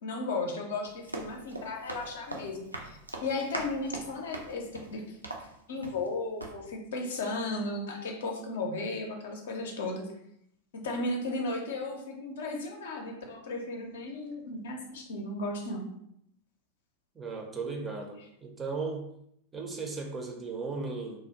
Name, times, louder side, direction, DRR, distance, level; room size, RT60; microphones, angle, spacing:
voice 1, 0.0-5.2 5.7-10.1 10.7-15.9, left 2 dB, 60° left, 2 dB, 0.5 m, -35 dB
Run, 0.8-6.1 6.4-6.6, right 2 dB, 85° right, 0.3 m, -41 dB
voice 2, 17.2-19.1 19.5-21.3, right 4 dB, 20° right, 2 dB, 0.5 m, -36 dB
2.5 x 2.0 x 2.8 m, 0.75 s
figure-of-eight pair, 90°, 0 cm